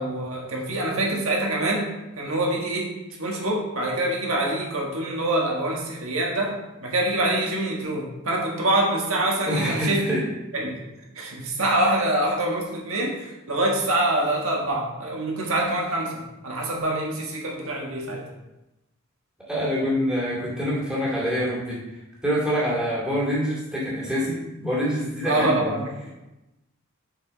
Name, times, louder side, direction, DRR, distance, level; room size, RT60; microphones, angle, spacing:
voice 1, 0.0-1.9 2.2-10.1 10.5-10.8 11.1-18.3 25.2-26.1, right 1 dB, 75° right, -1 dB, 1.6 m, -25 dB
voice 2, 9.5-10.2 19.5-21.8 22.2-25.7, equal, 5° right, -7 dB, 2.2 m, -25 dB
6.6 x 5.1 x 4.1 m, 0.97 s
head